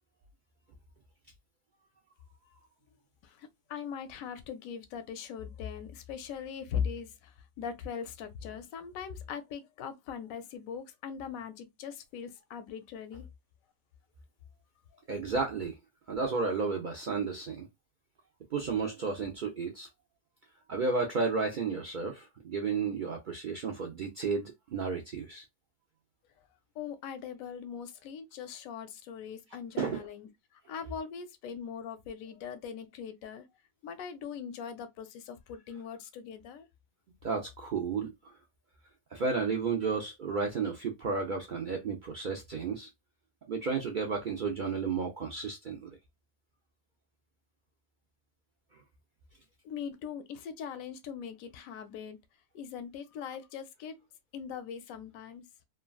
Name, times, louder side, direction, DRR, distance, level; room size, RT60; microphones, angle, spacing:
voice 1, 3.2-13.3 26.8-30.3 30.7-33.5 33.8-36.7 49.6-52.2 52.5-54.0 54.3-55.4, left 7 dB, 80° left, 1.0 m, -40 dB
voice 2, 15.1-15.8 16.1-17.7 18.5-19.9 20.7-25.4 29.8-30.1 37.2-38.4 39.1-42.9 43.5-45.9, right 4 dB, 70° right, 0.4 m, -32 dB
3.1 x 2.3 x 2.3 m
omnidirectional pair, 1.4 m